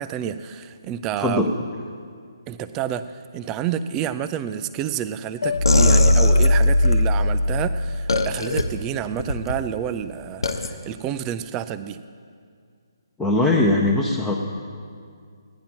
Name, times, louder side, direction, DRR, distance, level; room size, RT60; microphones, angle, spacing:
voice 1, 0.0-1.5 2.5-12.0, right 10 dB, 20° right, 12 dB, 0.4 m, -29 dB
sound 1, 5.4-8.6, left 1 dB, 65° left, 0.8 m, -19 dB
sound 2, 5.6-7.0 8.1-8.6 9.2-9.6 10.4-10.7, left 2 dB, 85° left, 0.9 m, -22 dB
voice 2, 13.2-14.3, left 2 dB, 10° left, -2 dB, 0.7 m, -20 dB
16.0 x 10.5 x 4.4 m, 2.2 s
hypercardioid pair, 150°, 2 cm